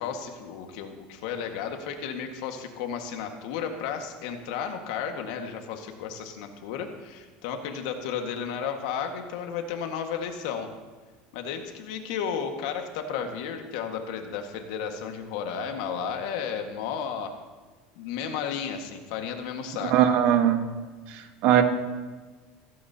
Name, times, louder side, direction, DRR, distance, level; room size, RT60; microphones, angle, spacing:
voice 1, 0.0-10.7 11.3-17.3 18.0-20.0, left 7 dB, 80° left, 4 dB, 1.8 m, -33 dB
voice 2, 19.9-20.6 21.1-21.6, right 10 dB, 60° right, 7 dB, 1.4 m, -20 dB
16.0 x 16.0 x 2.9 m, 1.4 s
supercardioid pair, 135°, 3 cm